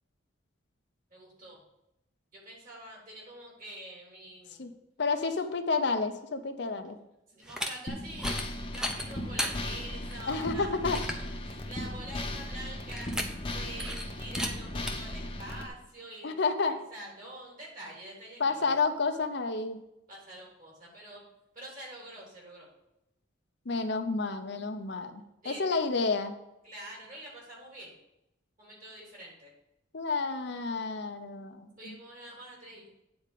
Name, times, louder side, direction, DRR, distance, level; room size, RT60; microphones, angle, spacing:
voice 1, 1.1-1.6 2.3-4.6 7.3-8.4 8.7-10.7 11.3-13.3 13.5-16.4 16.7-18.7 20.1-21.2 21.5-22.7 25.4-25.6 26.6-28.0 28.6-29.5 31.8-32.9, right 1 dB, 45° right, -3 dB, 3.6 m, -46 dB
voice 2, 5.0-7.0 10.3-11.0 16.2-16.8 18.4-19.8 23.7-26.3 29.9-32.0, left 4 dB, 60° left, 7 dB, 0.7 m, -30 dB
sound 1, 7.4-7.7 8.1-8.5 8.7-9.5 10.1-10.2 10.6-10.7 10.9-11.3 12.9-13.5 13.8-14.0 14.3-14.5 14.9-15.0, equal, 5° right, 0.7 m, -34 dB
sound 2, 7.9-15.7, left 1 dB, 25° left, 0.9 m, -37 dB
9.1 x 4.3 x 6.8 m, 0.88 s
head